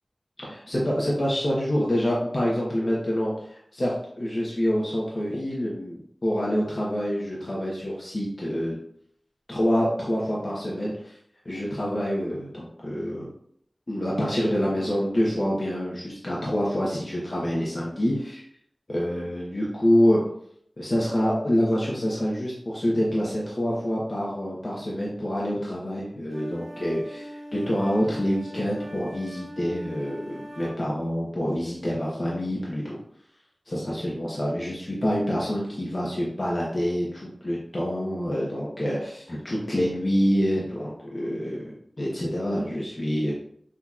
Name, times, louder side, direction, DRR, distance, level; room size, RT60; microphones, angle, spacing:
voice 1, 0.4-8.8 9.5-11.1 11.4-13.3 13.9-18.4 18.9-20.2 20.8-33.0 33.7-43.3, equal, 50° left, -5 dB, 1.0 m, -26 dB
sound 1, 26.3-30.8, equal, 45° right, 1.4 m, -41 dB
6.1 x 3.0 x 2.4 m, 0.68 s
wide cardioid pair, 55°, 0 cm